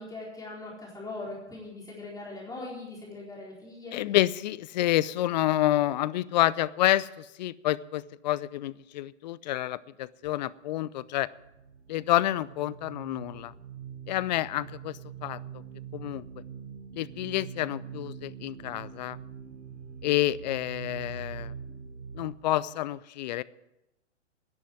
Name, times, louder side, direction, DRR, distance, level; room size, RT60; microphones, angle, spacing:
voice 1, 0.0-3.9, left 2 dB, 10° left, -4 dB, 4.2 m, -40 dB
voice 2, 3.9-11.3 11.9-13.5 14.1-15.4 15.9-16.2 16.9-19.2 20.0-21.5 22.1-23.4, left 14 dB, 40° left, 20 dB, 0.5 m, -28 dB
sound 1, 11.1-22.3, right 7 dB, 70° right, 1.6 m, -43 dB
10.5 x 10.5 x 9.4 m, 0.91 s
figure-of-eight pair, 115°, 36 cm